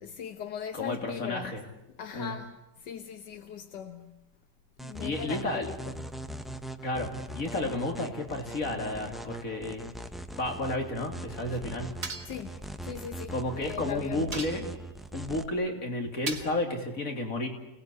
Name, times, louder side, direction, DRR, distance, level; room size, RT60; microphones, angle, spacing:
voice 1, 0.0-1.6 2.0-4.2 4.8-6.0 12.3-14.3, left 8 dB, 80° left, 1.8 m, -40 dB
voice 2, 0.7-1.6 2.1-2.3 5.0-5.7 6.8-9.8 10.4-11.9 13.3-14.6 15.1-17.5, left 2 dB, 50° left, 3.4 m, -32 dB
sound 1, 4.8-15.5, right 1 dB, ahead, 0.6 m, -41 dB
sound 2, 12.0-12.5 14.3-14.9 16.3-16.7, right 4 dB, 50° right, 2.1 m, -38 dB
29.5 x 18.5 x 8.4 m
omnidirectional pair, 1.8 m